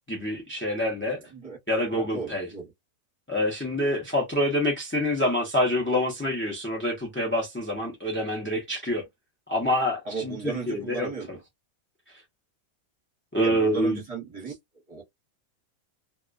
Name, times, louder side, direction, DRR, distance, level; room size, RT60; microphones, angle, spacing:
voice 1, 0.0-1.2 1.7-2.5 3.3-9.0 9.5-11.1 12.1-12.2 13.3-14.0, left 1 dB, 20° left, 0.3 m, -26 dB
voice 2, 1.0-1.6 1.9-2.7 10.0-11.4 13.4-14.5 14.9-15.0, right 5 dB, 30° right, 0.9 m, -35 dB
2.4 x 2.2 x 2.4 m
omnidirectional pair, 1.4 m